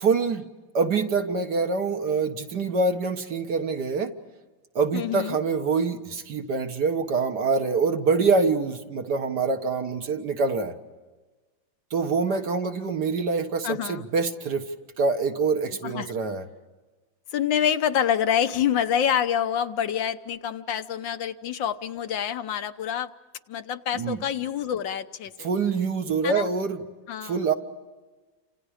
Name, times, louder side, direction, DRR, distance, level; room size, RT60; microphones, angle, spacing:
voice 1, 0.0-0.4 0.7-4.1 4.8-10.7 11.9-14.7 15.0-16.5 23.9-24.2 25.4-26.8 27.2-27.5, right 4 dB, 60° right, 5 dB, 2.0 m, -25 dB
voice 2, 4.9-5.4 12.3-12.4 12.8-12.9 13.6-14.1 15.8-16.1 17.3-23.1 23.5-25.5 26.2-26.5 27.1-27.4, left 9 dB, 75° left, 9 dB, 1.6 m, -27 dB
30.0 x 27.0 x 5.0 m, 1.3 s
omnidirectional pair, 2.1 m